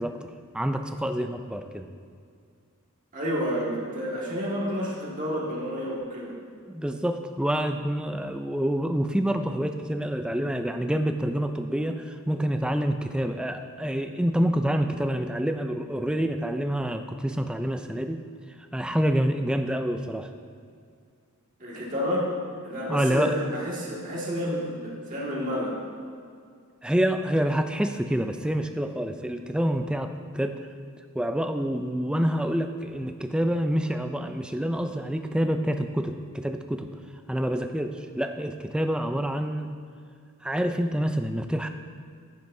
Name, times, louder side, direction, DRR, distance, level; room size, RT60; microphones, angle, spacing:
voice 1, 0.0-1.9 6.7-18.2 18.7-20.3 22.9-23.3 26.8-30.6 31.2-36.9 37.3-39.7 40.4-41.7, equal, 5° right, 7 dB, 0.3 m, -27 dB
voice 2, 3.1-6.3 21.6-22.3 22.6-25.8, equal, 35° right, -6 dB, 1.9 m, -30 dB
11.0 x 9.9 x 2.7 m, 2.2 s
head